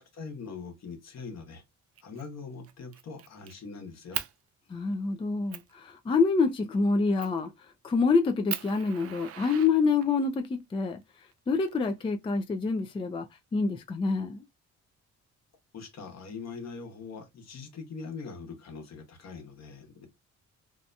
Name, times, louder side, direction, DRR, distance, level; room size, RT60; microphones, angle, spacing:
voice 1, 0.0-1.6 2.0-4.2 15.7-20.1, left 4 dB, 60° left, 1.1 m, -42 dB
Fire, 2.0-2.2 2.6-3.5 4.1-4.3 4.9-5.0 5.5-5.7 7.2-7.5 8.0-8.1 8.5-10.3 11.3-12.3, right 11 dB, 50° right, 0.4 m, -38 dB
voice 2, 4.7-7.5 7.8-11.0 11.5-13.3 13.5-14.4, left 4 dB, 20° left, 0.3 m, -26 dB
2.7 x 2.2 x 2.5 m
cardioid pair, 90°, 30 cm